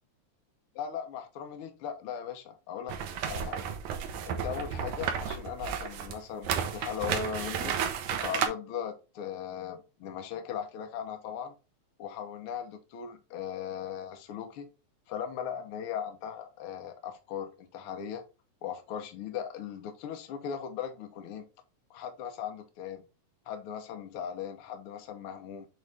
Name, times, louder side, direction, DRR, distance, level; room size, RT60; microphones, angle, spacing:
voice 1, 0.7-3.0 3.2-3.7 4.3-7.7 8.2-11.5 12.0-14.7 15.1-18.2 18.6-21.5 21.9-23.0 23.5-25.7, left 8 dB, 60° left, 1.6 m, -38 dB
sound 1, 2.9-8.5, right 8 dB, 80° right, 2.3 m, -32 dB
8.2 x 3.3 x 3.6 m
omnidirectional pair, 3.4 m